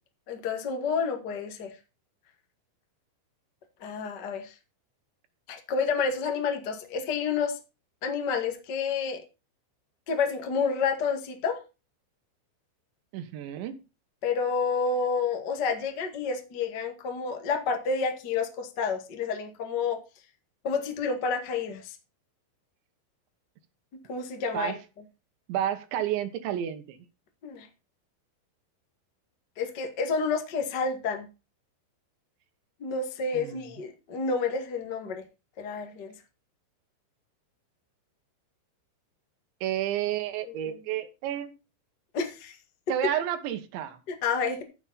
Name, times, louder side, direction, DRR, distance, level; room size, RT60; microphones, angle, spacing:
voice 1, 0.3-1.7 3.8-4.5 5.5-7.6 8.0-9.2 10.1-11.6 14.2-20.0 20.6-21.9 24.1-24.7 27.4-27.7 29.6-31.3 32.8-35.2 35.6-36.1 40.4-40.5 42.1-42.6 44.1-44.6, left 5 dB, 75° left, 6 dB, 0.9 m, -29 dB
voice 2, 13.1-13.7 24.5-24.8 25.5-27.0 33.3-33.6 39.6-41.5 42.9-44.0, right 11 dB, 70° right, 8 dB, 3.4 m, -30 dB
14.0 x 7.3 x 4.2 m, 0.30 s
omnidirectional pair, 5.7 m